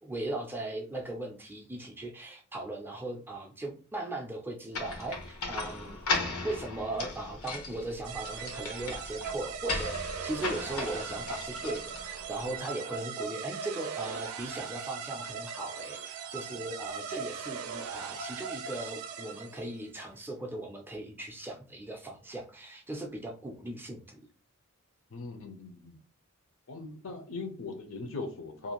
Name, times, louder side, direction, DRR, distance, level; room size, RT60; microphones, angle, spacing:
voice 1, 0.0-24.2, right 2 dB, 10° right, 1 dB, 0.4 m, -38 dB
sound 1, 4.7-12.4, left 3 dB, 90° left, 0.9 m, -37 dB
sound 2, 8.0-19.7, right 6 dB, 85° right, 0.4 m, -39 dB
voice 2, 25.1-26.0 26.7-28.7, left 3 dB, 65° left, 5 dB, 0.6 m, -40 dB
2.6 x 2.4 x 2.9 m, 0.37 s
head